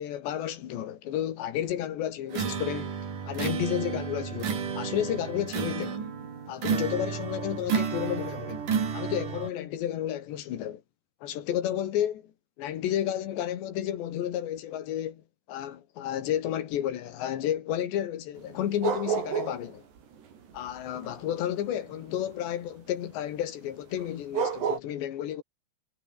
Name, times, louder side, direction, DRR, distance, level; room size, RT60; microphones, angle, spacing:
voice 1, 0.0-2.9 3.3-6.0 6.5-8.7 8.9-10.8 11.2-12.3 12.6-15.2 15.5-19.8 20.5-25.4, left 11 dB, 80° left, 4.2 m, -31 dB
sound 1, 2.3-9.5, right 6 dB, 50° right, 4.9 m, -31 dB
sound 2, 18.4-19.7 20.0-22.4 24.0-24.1 24.3-24.8, right 7 dB, 70° right, 6.3 m, -30 dB
omnidirectional pair, 5.0 m